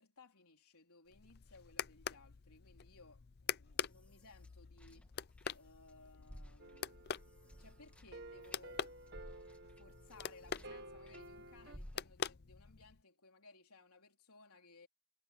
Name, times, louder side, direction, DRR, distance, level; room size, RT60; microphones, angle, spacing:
voice 1, 0.0-5.1 5.5-7.2 7.5-8.8 9.8-14.9, left 3 dB, 85° left, 3.8 m, -62 dB
sound 1, 1.1-13.0, left 7 dB, 45° left, 0.5 m, -46 dB
sound 2, 3.6-5.9 6.2-11.3 11.7-12.4, equal, 5° left, 1.6 m, -57 dB
sound 3, 6.6-11.8, right 2 dB, 50° right, 1.6 m, -54 dB
head